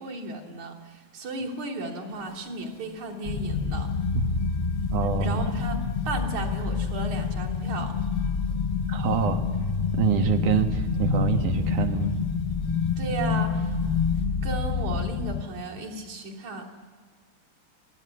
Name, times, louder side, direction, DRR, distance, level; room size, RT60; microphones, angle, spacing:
voice 1, 0.0-3.9 5.2-8.0 13.0-13.8 14.4-16.7, right 3 dB, 65° right, -2 dB, 4.5 m, -34 dB
sound 1, 2.1-2.4 2.8-3.0 3.5-3.6 3.9-4.1 4.5-14.3, left 6 dB, 55° left, 1.5 m, -33 dB
sound 2, 3.2-15.4, left 5 dB, 30° left, 1.0 m, -28 dB
voice 2, 4.9-5.4 8.9-9.4 9.9-12.1, right 6 dB, 80° right, 6 dB, 3.0 m, -25 dB
29.5 x 20.0 x 9.8 m, 1.5 s
omnidirectional pair, 3.5 m